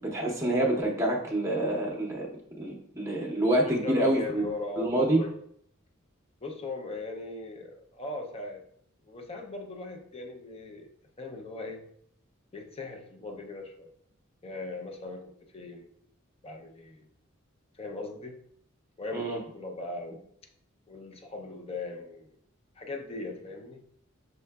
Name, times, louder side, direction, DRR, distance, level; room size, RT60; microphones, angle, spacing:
voice 1, 0.0-2.3 2.6-4.4 4.8-5.2 19.1-19.4, right 1 dB, 15° right, -1 dB, 0.7 m, -27 dB
voice 2, 3.6-5.3 6.4-8.6 9.0-10.9 11.2-11.8 12.5-13.9 14.4-15.9 16.4-17.1 17.8-18.4 19.0-20.2 20.9-22.3 22.8-23.8, left 2 dB, 30° left, 3 dB, 0.5 m, -39 dB
5.6 x 3.7 x 2.2 m, 0.66 s
head